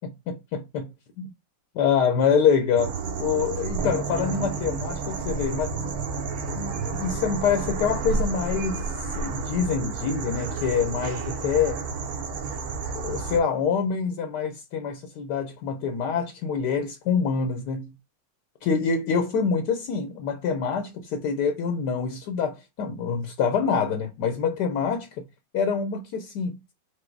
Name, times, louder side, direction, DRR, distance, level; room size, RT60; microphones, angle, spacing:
voice 1, 0.3-0.9 1.2-1.3 1.7-5.9 6.5-11.8 12.9-17.9 18.6-25.2 25.5-26.6, left 6 dB, 70° left, 1.2 m, -26 dB
sound 1, 2.8-13.4, right 4 dB, 60° right, 1.2 m, -31 dB
4.6 x 2.2 x 4.5 m
omnidirectional pair, 2.0 m